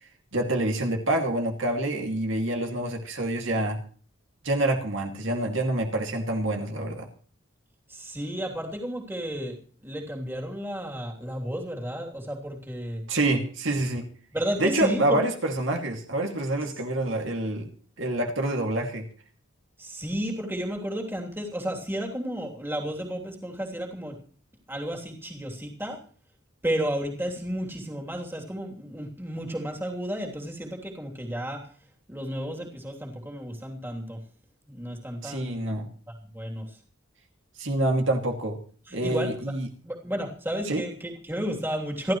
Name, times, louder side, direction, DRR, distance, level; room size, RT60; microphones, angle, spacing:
voice 1, 0.3-3.8 4.4-7.1 13.1-14.1 14.6-17.7 18.0-19.0 35.2-35.9 37.6-38.6 38.9-39.7 40.7-40.8, right 1 dB, 65° right, 2 dB, 2.4 m, -27 dB
voice 2, 7.9-9.6 9.8-13.0 14.3-15.2 19.8-24.2 24.7-26.0 26.6-31.7 32.1-34.2 34.7-35.6 36.3-36.8 38.9-39.4 39.8-42.1, equal, 10° right, 0 dB, 3.0 m, -32 dB
28.0 x 12.5 x 3.1 m, 0.44 s
head